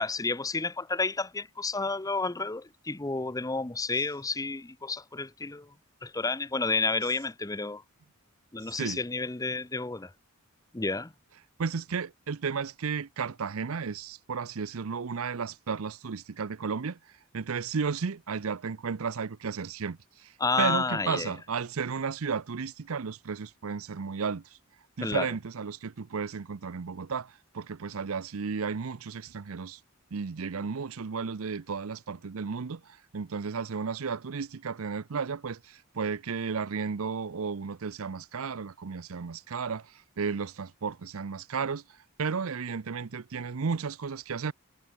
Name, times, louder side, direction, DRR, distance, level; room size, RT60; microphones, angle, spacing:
voice 1, 0.0-5.7 6.0-7.8 8.5-10.1 10.7-11.1 20.4-21.3 25.0-25.3, left 3 dB, 15° left, 0.7 m, -30 dB
voice 2, 8.6-9.0 11.6-17.0 17.3-24.4 25.0-29.8 30.1-41.8 42.2-44.5, right 5 dB, 75° right, 0.6 m, -33 dB
head